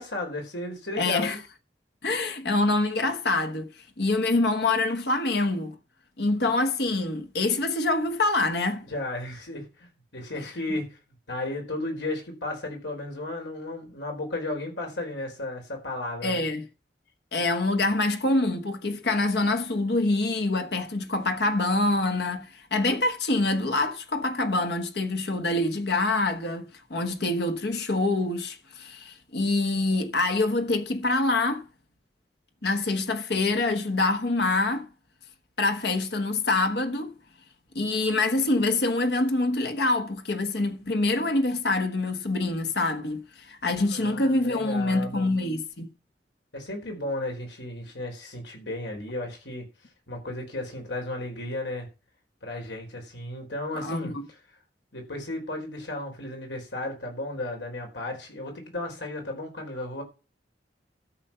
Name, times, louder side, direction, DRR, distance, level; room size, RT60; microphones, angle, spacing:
voice 1, 0.0-1.4 8.9-11.0 11.3-16.4 43.9-45.3 46.5-49.7 50.1-51.9 52.4-54.4 54.9-60.0, left 2 dB, 90° left, 4.5 m, -34 dB
voice 2, 1.0-1.4 2.0-3.7 4.0-5.7 6.2-8.8 16.2-16.6 17.3-31.6 32.6-34.9 35.6-37.1 37.7-45.9 53.7-54.3, left 2 dB, 70° left, 1.2 m, -25 dB
13.0 x 6.8 x 5.5 m
head